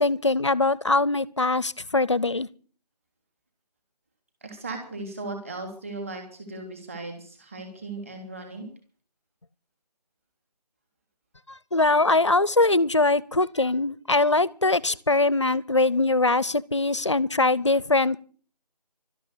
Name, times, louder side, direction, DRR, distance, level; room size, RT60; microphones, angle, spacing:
voice 1, 0.0-2.5 11.7-18.2, left 2 dB, 45° left, 0.6 m, -22 dB
voice 2, 4.4-8.7, right 2 dB, 20° right, 3.3 m, -37 dB
13.0 x 11.5 x 8.3 m
figure-of-eight pair, 175°, 21 cm